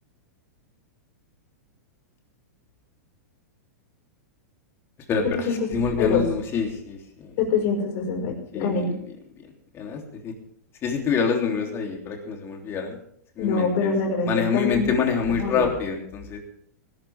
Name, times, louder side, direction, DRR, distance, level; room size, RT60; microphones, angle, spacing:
voice 1, 5.1-7.3 8.5-8.8 9.7-10.3 10.8-12.9 13.4-13.9 14.2-16.4, left 6 dB, 25° left, 2 dB, 3.2 m, -26 dB
voice 2, 7.4-8.9 13.4-15.0 15.4-15.6, left 5 dB, 50° left, 2 dB, 5.4 m, -24 dB
19.5 x 12.0 x 3.6 m, 0.66 s
hypercardioid pair, 140°, 9 cm